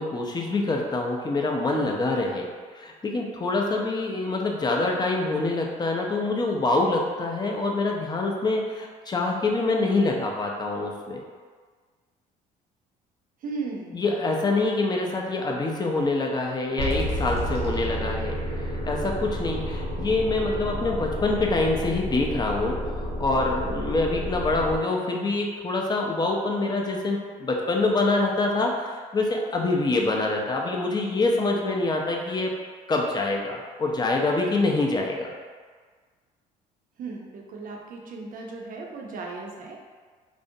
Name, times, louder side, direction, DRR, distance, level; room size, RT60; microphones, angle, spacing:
voice 1, 0.0-11.2 13.9-18.4 18.9-32.6 32.9-35.3, left 2 dB, 20° left, 0 dB, 0.5 m, -25 dB
voice 2, 13.4-14.0 37.0-39.8, right 4 dB, 45° right, 0 dB, 0.5 m, -36 dB
sound 1, 16.8-24.8, equal, 80° right, 0.8 m, -30 dB
2.5 x 2.1 x 2.6 m, 1.5 s
hypercardioid pair, 60°, 19 cm